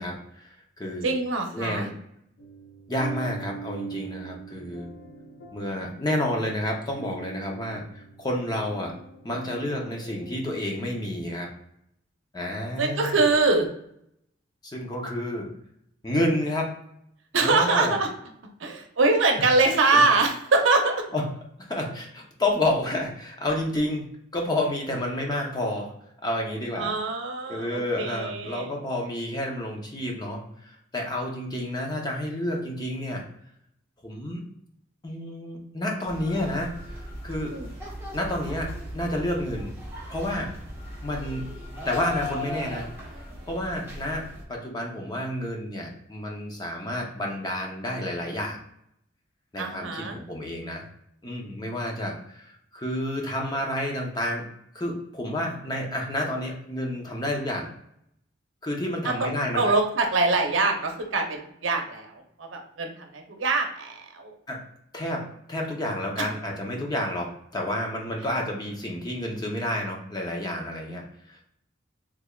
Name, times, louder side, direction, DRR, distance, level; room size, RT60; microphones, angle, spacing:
voice 1, 0.0-1.1 1.5-1.9 2.9-4.9 5.5-9.0 9.2-11.5 12.3-13.2 14.6-15.5 16.0-16.7 17.4-18.0 19.9-20.0 21.1-21.3 21.6-24.1 24.3-25.9 26.2-26.9 27.5-33.3 34.0-34.4 35.0-37.6 38.1-39.7 40.1-40.5 41.0-41.5 41.8-48.6 49.5-50.9 51.2-54.4 54.7-57.7 58.6-59.7 64.5-64.6 64.9-71.4, left 1 dB, 20° left, 0 dB, 0.7 m, -30 dB
voice 2, 1.0-1.9 5.1-5.2 12.8-13.7 17.3-18.1 18.6-20.9 26.8-28.7 37.5-37.7 49.6-50.2 59.0-59.3 59.6-64.3 66.2-66.3, right 3 dB, 80° right, 3 dB, 0.7 m, -24 dB
sound 1, 2.4-10.4, right 5 dB, 75° left, 0.6 m, -42 dB
sound 2, 36.1-44.4, left 1 dB, 15° right, 1.1 m, -37 dB
3.5 x 3.1 x 2.3 m, 0.73 s
head